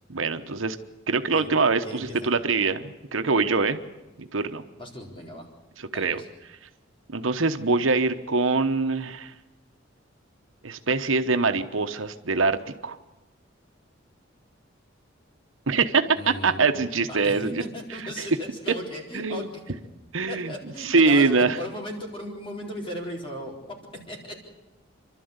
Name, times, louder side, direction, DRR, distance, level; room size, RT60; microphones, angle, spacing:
voice 1, 0.1-0.8 1.1-3.8 4.2-4.6 5.8-6.2 7.1-9.3 10.6-12.6 12.8-13.0 15.7-17.5 18.0-18.3 19.1-19.5 20.1-20.5 20.8-21.6, right 4 dB, 85° right, 8 dB, 1.1 m, -23 dB
voice 2, 1.8-2.3 4.8-5.5 5.9-6.3 16.1-16.7 17.1-19.6 20.3-23.5 24.1-24.3, equal, 30° left, -1 dB, 4.3 m, -37 dB
28.0 x 12.5 x 8.1 m, 1.1 s
head